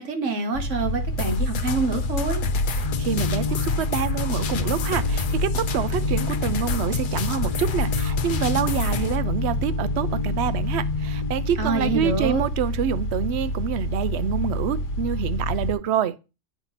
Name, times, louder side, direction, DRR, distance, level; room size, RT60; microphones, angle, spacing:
voice 1, 0.0-2.4 11.6-12.4, right 3 dB, 85° right, 1.5 m, -26 dB
sound 1, 0.5-15.7, equal, 85° left, 1.2 m, -28 dB
sound 2, 1.2-9.2, left 6 dB, 55° left, 0.6 m, -29 dB
sound 3, 2.8-12.4, left 6 dB, 30° left, 1.6 m, -32 dB
voice 2, 3.0-16.1, right 9 dB, 70° right, 0.8 m, -27 dB
8.1 x 2.8 x 5.6 m
omnidirectional pair, 1.2 m